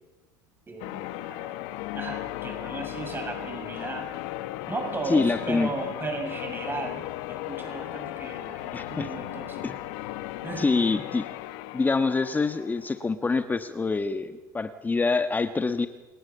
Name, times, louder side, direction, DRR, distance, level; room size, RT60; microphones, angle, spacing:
voice 1, 0.7-1.6 1.9-4.1 4.7-9.8 10.4-10.7, right 3 dB, 20° right, 5 dB, 7.1 m, -36 dB
Church bell, 0.8-13.1, left 15 dB, 65° left, 1.2 m, -36 dB
voice 2, 5.0-5.7 8.7-9.1 9.6-9.8 10.6-11.3 11.7-15.9, left 4 dB, 20° left, 9 dB, 1.3 m, -25 dB
29.0 x 18.5 x 7.3 m, 1.2 s
hypercardioid pair, 85°, 10 cm